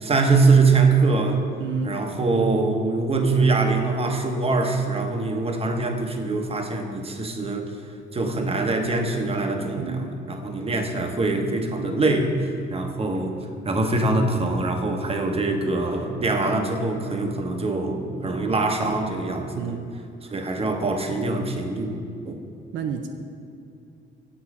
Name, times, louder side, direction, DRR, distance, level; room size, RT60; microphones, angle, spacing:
voice 1, 0.0-1.4 1.8-7.7 8.1-13.3 13.6-19.7 20.3-22.4, right 3 dB, 30° right, 4 dB, 1.0 m, -23 dB
voice 2, 1.6-2.0 9.8-10.1 19.5-19.9 22.7-23.1, right 7 dB, 75° right, 4 dB, 0.6 m, -30 dB
8.6 x 5.5 x 4.8 m, 2.5 s
cardioid pair, 90°, 20 cm